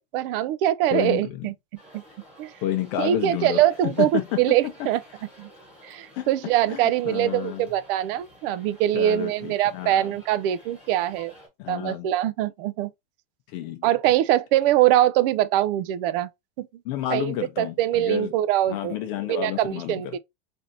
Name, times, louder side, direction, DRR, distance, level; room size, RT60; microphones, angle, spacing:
voice 1, 0.0-1.5 1.9-2.0 2.4-2.5 3.0-5.0 5.4-5.5 5.8-11.3 11.7-12.9 13.8-16.3 16.6-16.7 17.1-19.0 19.3-20.2, right 13 dB, 60° right, 0.4 m, -23 dB
voice 2, 0.9-1.5 2.6-4.2 6.1-6.3 6.7-7.7 8.9-10.1 11.6-12.1 13.5-13.9 16.8-18.3 18.7-20.2, left 12 dB, 55° left, 0.6 m, -30 dB
sound 1, 1.8-11.5, equal, 5° right, 1.4 m, -51 dB
3.3 x 2.7 x 2.6 m
supercardioid pair, 150°, 31 cm